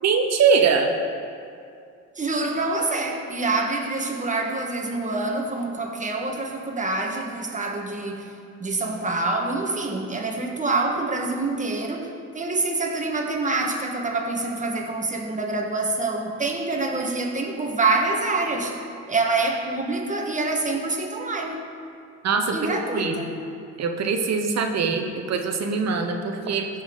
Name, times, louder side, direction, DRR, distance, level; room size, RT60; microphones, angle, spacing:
voice 1, 0.0-0.9 22.2-22.6 22.9-23.2 23.8-26.7, right 5 dB, 60° right, 5 dB, 1.0 m, -22 dB
voice 2, 2.1-8.3 8.6-12.1 12.3-18.8 19.1-21.6 22.5-23.3, right 3 dB, 25° right, 1 dB, 1.5 m, -26 dB
16.0 x 6.0 x 3.9 m, 2.4 s
cardioid pair, 90°, 30 cm